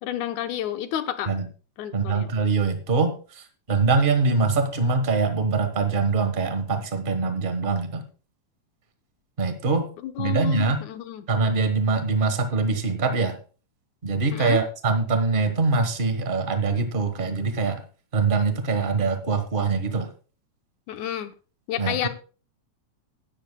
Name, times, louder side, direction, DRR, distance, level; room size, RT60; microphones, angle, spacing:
voice 1, 0.0-1.3 1.8-2.3 10.0-11.3 14.3-14.6 20.9-21.3 21.7-22.1, left 11 dB, 85° left, 9 dB, 2.3 m, -30 dB
voice 2, 1.9-8.0 9.4-9.9 10.2-10.8 11.3-13.4 14.0-17.8 18.1-20.1 21.8-22.1, right 4 dB, 70° right, 7 dB, 0.5 m, -23 dB
16.0 x 11.5 x 2.2 m, 0.36 s
omnidirectional pair, 3.3 m